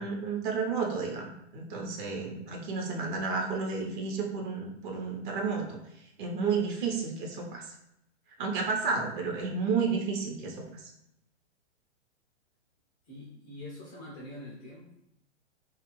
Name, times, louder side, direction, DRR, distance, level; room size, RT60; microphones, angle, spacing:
voice 1, 0.0-5.8 6.2-7.7 8.4-10.9, right 5 dB, 45° right, 1 dB, 0.8 m, -32 dB
voice 2, 13.1-14.9, left 1 dB, 15° left, -5 dB, 0.3 m, -44 dB
2.8 x 2.4 x 3.0 m, 0.81 s
hypercardioid pair, 120°, 35 cm